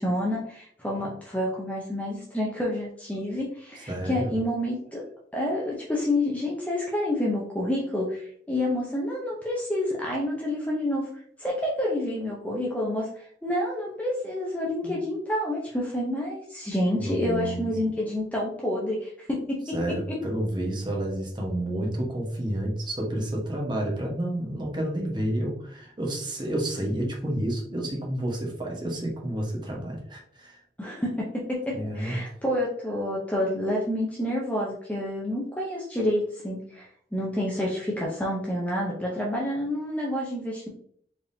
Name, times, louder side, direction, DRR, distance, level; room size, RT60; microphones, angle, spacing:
voice 1, 0.0-5.0 5.3-11.1 11.4-19.6 30.8-36.9 37.1-40.7, left 1 dB, 10° left, -4 dB, 0.7 m, -28 dB
voice 2, 3.9-4.3 14.8-15.0 17.0-17.7 19.7-30.6 31.7-32.2, right 1 dB, 25° right, -1 dB, 1.2 m, -30 dB
4.6 x 3.6 x 2.7 m, 0.64 s
head